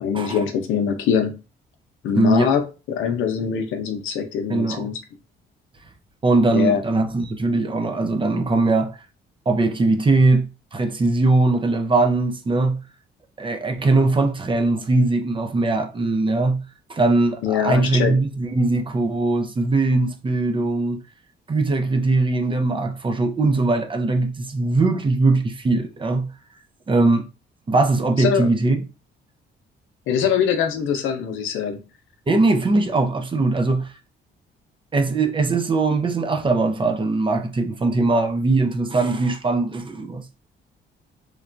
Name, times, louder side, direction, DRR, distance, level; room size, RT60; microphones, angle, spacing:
voice 1, 0.0-1.4 2.0-2.6 2.9-5.0 6.5-6.8 17.4-18.1 28.2-28.5 30.1-31.8, left 7 dB, 85° left, 0.6 m, -23 dB
voice 2, 2.1-2.5 4.5-4.9 6.2-9.0 9.5-12.8 13.4-16.6 16.9-21.0 21.5-26.3 26.9-27.3 27.7-28.8 32.3-33.9 34.9-40.2, right 3 dB, 25° right, 0.5 m, -20 dB
3.1 x 2.2 x 2.5 m
cardioid pair, 90°, 20 cm